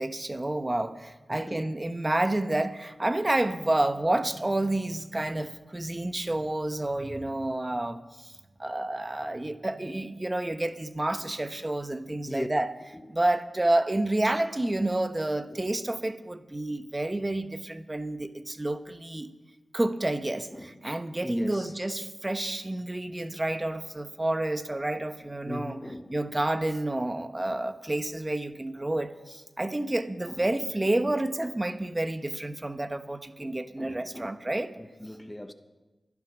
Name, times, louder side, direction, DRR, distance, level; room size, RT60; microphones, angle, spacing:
voice 1, 0.0-8.3 8.6-12.7 13.1-19.3 19.7-25.8 26.1-34.7, right 1 dB, 25° right, 1.0 m, -29 dB
voice 2, 1.3-1.7 11.2-11.3 12.3-12.5 15.5-15.6 20.5-20.8 21.2-21.7 25.4-26.2 30.3-30.5 33.4-34.3 34.8-35.5, left 1 dB, 15° left, 1.2 m, -39 dB
13.0 x 11.5 x 6.1 m
cardioid pair, 45°, 0 cm